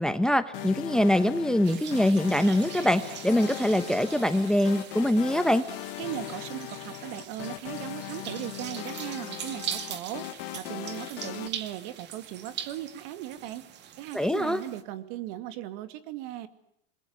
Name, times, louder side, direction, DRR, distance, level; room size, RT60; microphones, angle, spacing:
voice 1, 0.0-5.6 14.1-14.6, left 1 dB, ahead, 12 dB, 1.0 m, -24 dB
sound 1, 0.5-11.5, left 19 dB, 60° left, 1.6 m, -39 dB
sound 2, 1.6-14.8, right 9 dB, 35° right, 2.2 m, -42 dB
voice 2, 6.0-13.6 14.0-16.5, right 13 dB, 55° right, 11 dB, 2.5 m, -38 dB
27.0 x 21.5 x 9.6 m, 0.73 s
supercardioid pair, 135°, 30 cm